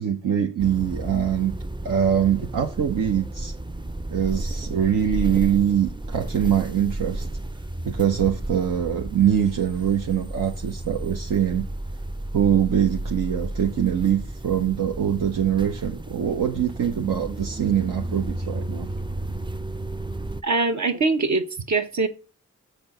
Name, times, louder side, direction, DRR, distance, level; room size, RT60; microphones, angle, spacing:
voice 1, 0.0-1.5 1.8-3.5 4.1-7.3 7.8-11.6 12.3-18.9, right 9 dB, 80° right, 0.8 m, -23 dB
bm busride, 0.6-20.4, right 1 dB, 15° right, 0.5 m, -32 dB
voice 2, 20.4-22.1, right 3 dB, 60° right, 1.3 m, -23 dB
8.0 x 4.3 x 5.3 m
cardioid pair, 40°, 32 cm